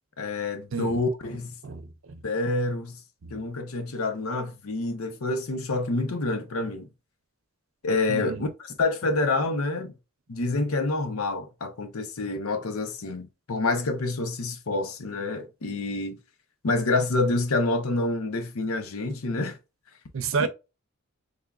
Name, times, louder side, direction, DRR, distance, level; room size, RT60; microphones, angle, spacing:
voice 1, 0.2-1.6 2.2-3.0 3.3-6.9 7.8-8.5 8.8-9.9 10.3-16.2 16.6-19.6 20.4-20.5, left 2 dB, 85° left, 0.7 m, -27 dB
voice 2, 0.7-1.4 1.6-2.2 3.2-3.4 8.1-8.5 20.1-20.5, right 5 dB, 65° right, 0.6 m, -31 dB
3.5 x 3.5 x 2.3 m
head